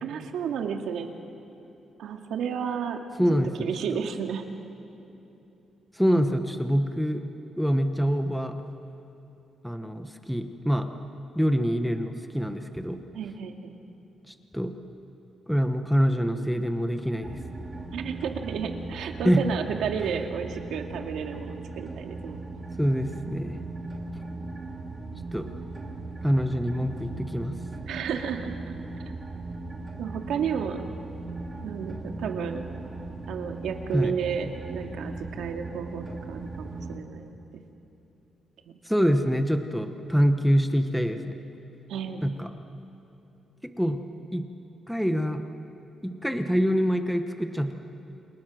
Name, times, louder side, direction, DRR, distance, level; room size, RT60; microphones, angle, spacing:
voice 1, 0.0-1.1 2.0-3.0 3.6-4.4 13.1-13.8 17.9-22.4 27.9-28.7 30.0-30.8 31.6-32.6 33.3-37.4 41.9-42.3, right 7 dB, 85° right, 4 dB, 2.1 m, -32 dB
voice 2, 3.2-4.0 5.9-7.2 7.6-8.6 9.6-10.9 11.3-13.0 14.3-14.7 15.5-17.4 19.2-19.4 22.8-23.6 25.3-25.5 26.2-27.6 33.9-34.2 38.8-41.3 42.2-42.5 43.8-44.1 44.3-44.5 44.9-45.4 46.0-47.7, equal, ahead, 6 dB, 1.0 m, -25 dB
sound 1, 17.2-37.0, right 3 dB, 20° right, 2.5 m, -38 dB
29.5 x 28.0 x 6.4 m, 2.9 s
cardioid pair, 170°, 0 cm